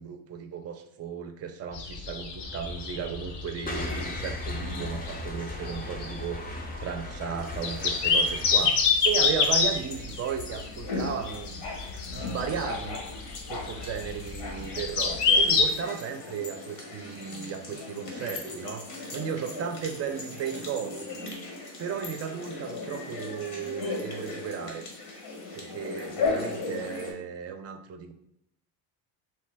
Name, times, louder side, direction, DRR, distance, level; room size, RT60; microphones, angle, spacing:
voice 1, 0.0-11.7 12.1-13.0 13.5-21.2 21.8-24.8 25.5-28.1, right 7 dB, 35° right, 7 dB, 0.4 m, -35 dB
sound 1, 1.7-15.6, left 5 dB, 60° left, 0.6 m, -28 dB
sound 2, 2.4-8.6, left 2 dB, 20° left, 0.5 m, -37 dB
sound 3, 7.4-27.1, left 3 dB, 80° left, 1.0 m, -37 dB
2.7 x 2.1 x 3.3 m, 0.75 s
supercardioid pair, 80°, 47 cm